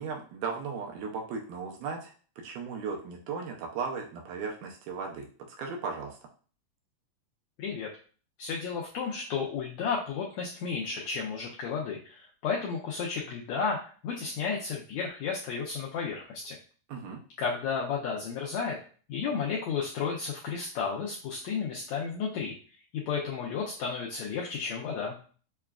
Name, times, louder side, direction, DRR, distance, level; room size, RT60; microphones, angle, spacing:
voice 1, 0.0-5.3 5.6-6.2 16.9-17.2, right 5 dB, 80° right, 1 dB, 2.0 m, -36 dB
voice 2, 7.6-7.9 8.4-16.6 17.4-18.8 19.1-22.5 22.9-25.2, left 5 dB, 85° left, -2 dB, 1.6 m, -32 dB
6.6 x 2.3 x 2.3 m, 0.40 s
omnidirectional pair, 3.9 m